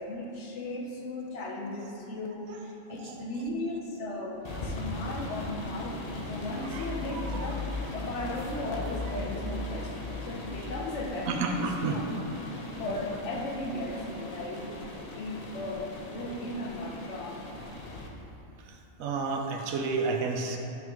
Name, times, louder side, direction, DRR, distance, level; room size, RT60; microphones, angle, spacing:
voice 1, 0.0-14.7 15.1-17.5, left 1 dB, 65° left, 0 dB, 1.0 m, -36 dB
voice 2, 3.0-3.5 4.4-4.6 5.3-5.4 6.6-7.6 9.0-9.1 11.3-12.0 13.1-13.2 15.3-15.4 18.6-20.6, right 4 dB, 85° right, 3 dB, 1.1 m, -33 dB
sound 1, 4.4-18.1, left 2 dB, 40° left, 0.5 m, -38 dB
11.0 x 3.6 x 3.0 m, 2.8 s
omnidirectional pair, 1.4 m